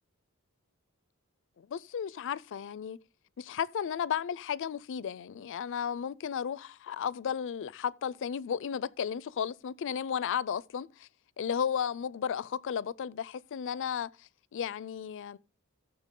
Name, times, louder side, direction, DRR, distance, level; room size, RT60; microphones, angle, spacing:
voice 1, 1.6-3.0 3.4-11.1 11.4-14.1 14.5-15.4, left 8 dB, 60° left, 0.4 m, -34 dB
15.0 x 6.9 x 3.8 m
head